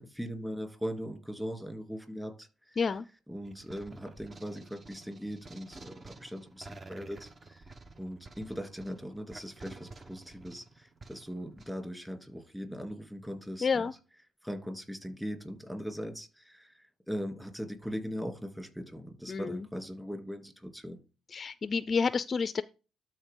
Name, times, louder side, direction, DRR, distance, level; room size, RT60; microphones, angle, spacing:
voice 1, 0.0-2.8 3.3-7.6 8.0-13.9 14.4-21.0, equal, 5° right, 2.7 m, -40 dB
sound 1, 3.4-11.7, right 3 dB, 35° right, 0.9 m, -51 dB
voice 2, 13.6-13.9 19.3-19.7 21.3-22.6, left 5 dB, 40° left, 0.4 m, -29 dB
12.5 x 4.5 x 3.7 m
cardioid pair, 90°, 0 cm